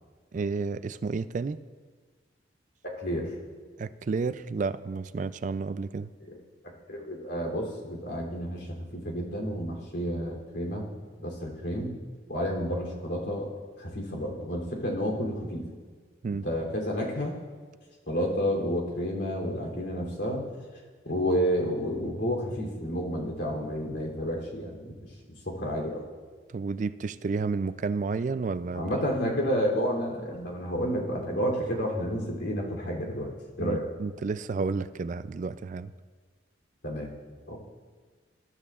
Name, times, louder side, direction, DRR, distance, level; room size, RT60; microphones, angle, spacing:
voice 1, 0.3-1.6 3.8-6.1 16.2-16.5 26.5-28.8 33.6-35.9, right 4 dB, 40° right, 13 dB, 0.3 m, -31 dB
voice 2, 2.8-3.3 6.3-6.4 6.9-10.9 11.2-11.9 12.3-13.5 13.8-15.6 16.3-17.3 18.1-20.5 21.0-24.9 25.4-26.0 28.7-33.8 36.8-37.1 37.5-37.6, equal, 70° left, -1 dB, 3.1 m, -30 dB
21.0 x 12.0 x 2.4 m, 1.5 s
head